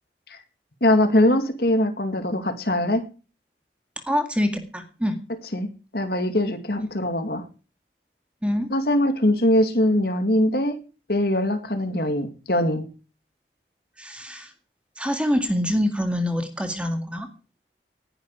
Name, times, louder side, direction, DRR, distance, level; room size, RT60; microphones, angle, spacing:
voice 1, 0.8-3.0 5.5-5.7 5.9-7.4 8.7-10.8 11.1-12.9, left 1 dB, 60° left, 7 dB, 2.4 m, -22 dB
voice 2, 4.0-5.2 8.4-8.7 14.0-14.5 15.0-17.3, equal, 5° right, 6 dB, 2.0 m, -25 dB
19.0 x 11.0 x 4.8 m, 0.36 s
head